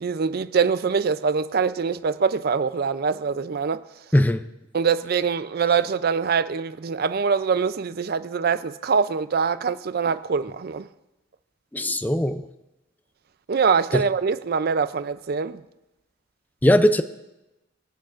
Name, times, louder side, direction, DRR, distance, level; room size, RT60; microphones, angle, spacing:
voice 1, 0.0-3.8 4.7-10.9 13.5-15.6, right 5 dB, 50° right, 0.4 m, -24 dB
voice 2, 11.7-12.5 13.9-14.0 16.6-17.0, left 1 dB, 10° left, 0.4 m, -19 dB
25.0 x 9.0 x 2.5 m
head